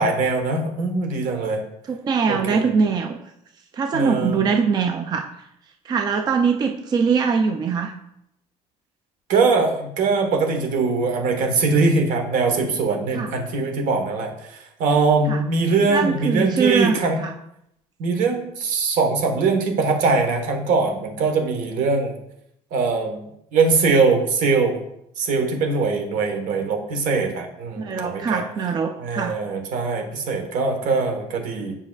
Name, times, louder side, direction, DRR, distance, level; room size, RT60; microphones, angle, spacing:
voice 1, 0.0-1.6 2.3-2.7 3.9-4.4 9.3-17.2 18.0-22.1 22.7-23.2 23.5-24.8 25.2-28.4 29.0-31.8, right 4 dB, 70° right, 4 dB, 1.3 m, -22 dB
voice 2, 1.9-3.2 3.7-5.3 5.9-7.9 13.1-13.3 15.3-15.4 15.9-17.3 27.8-29.4, right 5 dB, 30° right, 5 dB, 0.4 m, -22 dB
7.5 x 5.3 x 2.4 m, 0.78 s
cardioid pair, 130°, 14 cm